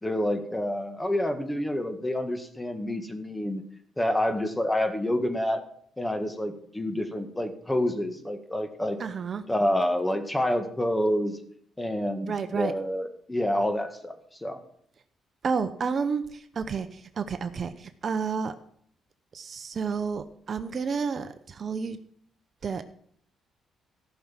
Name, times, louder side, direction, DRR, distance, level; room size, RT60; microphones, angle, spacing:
voice 1, 0.0-3.6 4.0-5.6 6.0-9.0 9.5-11.4 11.8-14.1 14.4-14.6, left 1 dB, 10° left, 8 dB, 1.7 m, -28 dB
voice 2, 9.0-9.4 12.2-12.7 15.4-18.6 19.3-22.0 22.6-22.8, right 5 dB, 45° right, 11 dB, 0.8 m, -30 dB
14.0 x 6.3 x 7.4 m, 0.63 s
cardioid pair, 90°, 0 cm